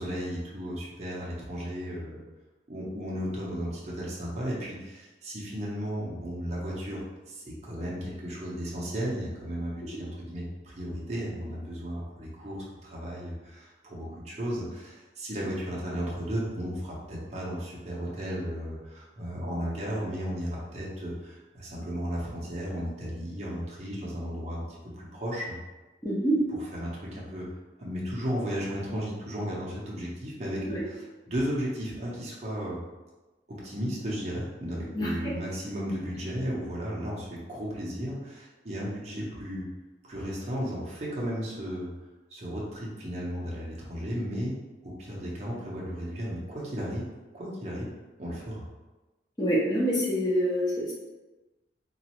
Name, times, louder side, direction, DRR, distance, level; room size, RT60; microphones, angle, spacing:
voice 1, 0.0-2.2 2.7-25.6 26.8-27.5 27.8-32.8 33.5-39.7 40.0-41.9 42.3-47.1 47.3-47.9 48.2-48.6, equal, 35° right, -5 dB, 0.7 m, -34 dB
voice 2, 26.0-26.4 30.7-30.8 34.9-35.3 49.4-50.9, equal, 20° left, -7 dB, 0.8 m, -26 dB
3.1 x 2.4 x 2.9 m, 1.1 s
head